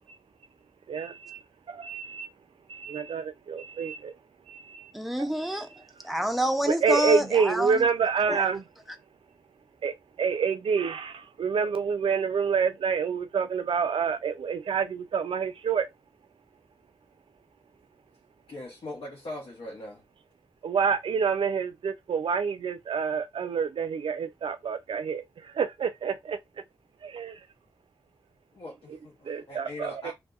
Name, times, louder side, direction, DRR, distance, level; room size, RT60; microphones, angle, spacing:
voice 1, 0.9-2.3 2.7-4.1 4.5-4.9 5.2-5.3 6.7-8.7 9.8-15.9 20.6-26.4 27.0-27.5 28.9-29.0 29.2-30.1, right 6 dB, 75° right, 0.4 m, -28 dB
voice 2, 4.9-7.8 8.3-8.5, equal, ahead, 0.4 m, -28 dB
voice 3, 18.5-20.0 28.5-30.1, left 1 dB, 70° left, 0.7 m, -40 dB
2.6 x 2.1 x 2.3 m
wide cardioid pair, 110°, 9 cm